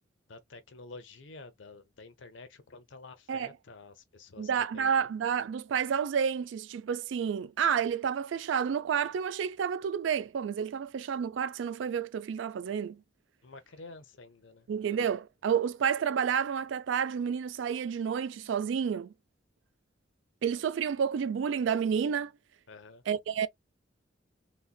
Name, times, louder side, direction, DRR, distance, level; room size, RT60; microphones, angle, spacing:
voice 1, 0.3-5.1 13.4-14.7 22.7-23.0, left 3 dB, 70° left, 0.7 m, -50 dB
voice 2, 4.4-13.0 14.7-19.1 20.4-22.3 23.1-23.5, right 7 dB, 70° right, 0.3 m, -30 dB
3.9 x 2.1 x 2.2 m
head